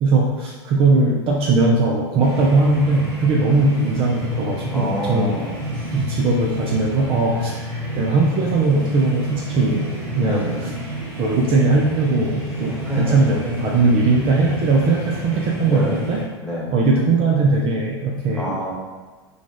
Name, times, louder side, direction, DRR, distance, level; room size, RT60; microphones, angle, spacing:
voice 1, 0.0-5.4 5.9-7.5 7.9-9.9 10.2-10.7 11.2-16.2 16.7-18.5, right 3 dB, 40° right, -2 dB, 0.5 m, -19 dB
sound 1, 2.2-16.2, equal, 15° right, 1.4 m, -30 dB
voice 2, 4.3-5.6 10.3-10.6 12.8-13.3 15.6-16.0 16.4-16.7 18.3-18.7, left 1 dB, 5° left, -6 dB, 1.2 m, -27 dB
3.4 x 2.4 x 3.5 m, 1.3 s
hypercardioid pair, 95°, 14 cm